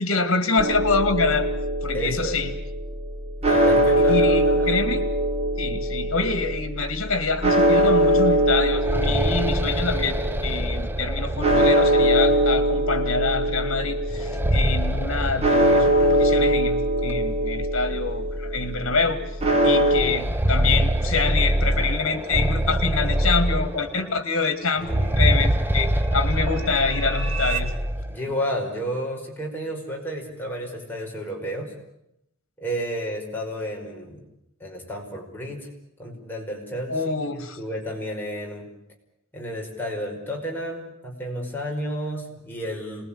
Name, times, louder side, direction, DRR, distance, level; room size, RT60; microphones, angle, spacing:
voice 1, 0.0-1.5 1.8-2.5 4.0-5.0 5.6-19.2 19.6-27.7 36.9-37.6, left 4 dB, 65° left, 9 dB, 2.3 m, -26 dB
sound 1, 0.6-20.0, equal, 30° right, 3.3 m, -22 dB
voice 2, 1.9-2.5 3.4-4.7 24.8-25.2 28.1-31.7 32.6-34.2 34.6-35.7 36.0-38.7 39.3-43.1, equal, 10° left, -1 dB, 5.4 m, -32 dB
sound 2, 8.5-12.3 14.1-16.3 16.6-16.7 17.6-17.7 18.2-18.3 19.9-24.1 24.8-28.2, right 1 dB, 10° right, 0.9 m, -24 dB
sound 3, 23.6-27.6, right 8 dB, 65° right, 3.1 m, -37 dB
27.0 x 20.5 x 8.9 m, 0.82 s
head